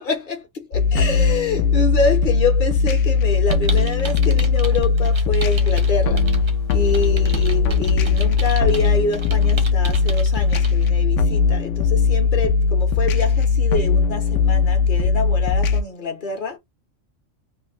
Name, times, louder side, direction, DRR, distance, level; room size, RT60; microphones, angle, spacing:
voice 1, 0.0-6.4 6.7-16.6, left 4 dB, 45° left, 1.0 m, -26 dB
sound 1, 0.7-15.8, left 5 dB, 80° left, 0.9 m, -19 dB
sound 2, 3.5-10.9, right 4 dB, 40° right, 0.4 m, -36 dB
3.3 x 2.1 x 3.1 m
omnidirectional pair, 1.3 m